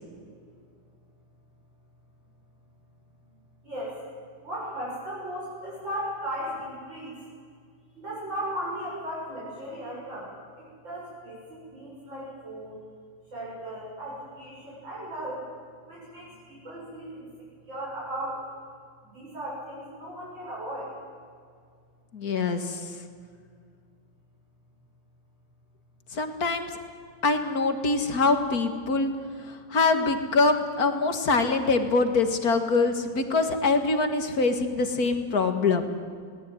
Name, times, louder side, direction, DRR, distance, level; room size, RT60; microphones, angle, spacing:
voice 1, 4.4-7.1 8.0-10.3 10.6-12.8 13.3-15.4 15.9-17.2 17.7-18.4 19.1-20.9, equal, 80° right, -6 dB, 7.8 m, -36 dB
voice 2, 22.1-22.9 26.1-26.7 27.2-29.1 29.5-35.9, left 3 dB, 50° left, 7 dB, 2.3 m, -24 dB
21.5 x 18.5 x 9.4 m, 2.1 s
omnidirectional pair, 2.0 m